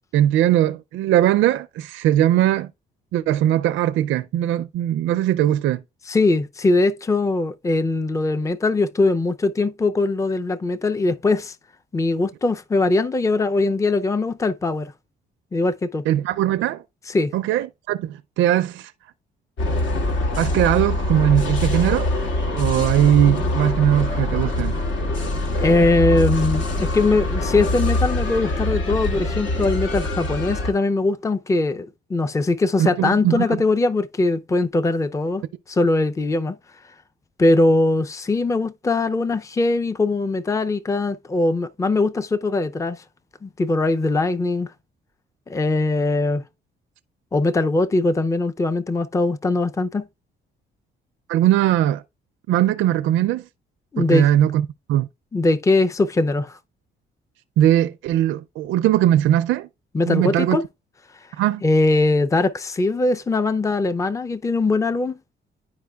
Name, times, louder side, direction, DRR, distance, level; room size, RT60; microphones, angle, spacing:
voice 1, 0.1-2.7 3.1-5.8 16.1-16.8 17.3-18.9 20.4-22.1 22.4-24.8 32.8-33.6 51.3-52.0 52.5-53.5 54.0-55.1 57.6-59.7 60.0-60.6 61.4-61.6, right 12 dB, 80° right, 0.4 m, -20 dB
voice 2, 6.1-11.5 11.9-14.9 15.5-16.0 17.1-17.3 25.6-35.4 35.7-36.6 37.4-43.0 43.4-44.7 45.5-46.4 47.3-50.0 53.9-54.3 55.3-56.6 59.9-60.6 61.6-65.1, left 2 dB, 15° left, 0.5 m, -21 dB
sound 1, 19.6-30.7, left 2 dB, 75° left, 2.2 m, -24 dB
10.5 x 4.8 x 2.3 m
cardioid pair, 90°, 20 cm